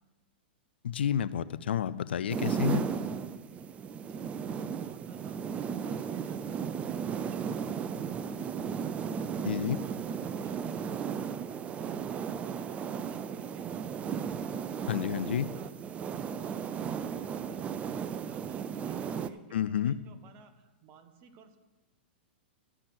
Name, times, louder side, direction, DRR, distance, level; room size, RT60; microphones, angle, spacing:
voice 1, 0.8-2.8 9.4-9.8 14.9-15.5 19.5-20.0, left 9 dB, 75° left, 17 dB, 0.4 m, -30 dB
sound 1, 2.3-19.3, right 7 dB, 20° right, 0.4 m, -35 dB
voice 2, 4.1-11.4 11.7-14.9 15.4-15.7 16.0-21.6, right 6 dB, 40° right, 8 dB, 1.1 m, -56 dB
12.5 x 5.8 x 6.4 m, 1.1 s
hypercardioid pair, 115°, 6 cm